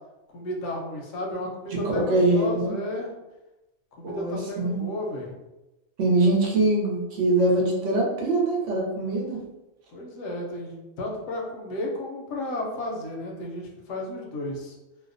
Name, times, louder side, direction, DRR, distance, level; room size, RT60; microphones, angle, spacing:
voice 1, 0.3-3.1 4.0-5.3 9.9-14.7, left 1 dB, 80° left, -1 dB, 1.0 m, -33 dB
voice 2, 1.7-2.8 4.0-4.8 6.0-9.4, right 2 dB, 70° right, -2 dB, 0.9 m, -23 dB
2.6 x 2.0 x 2.5 m, 1.0 s
omnidirectional pair, 1.4 m